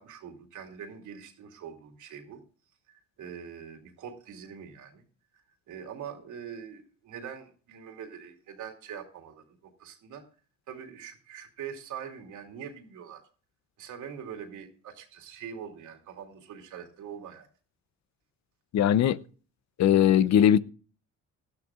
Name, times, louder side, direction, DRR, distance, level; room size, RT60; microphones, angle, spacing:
voice 1, 0.0-2.4 2.9-5.0 5.7-10.2 10.7-13.2 13.8-17.5, right 8 dB, 80° right, 2.8 m, -43 dB
voice 2, 18.7-19.2 19.8-20.6, left 10 dB, 65° left, 0.7 m, -20 dB
18.5 x 12.5 x 2.4 m
cardioid pair, 90°, 30 cm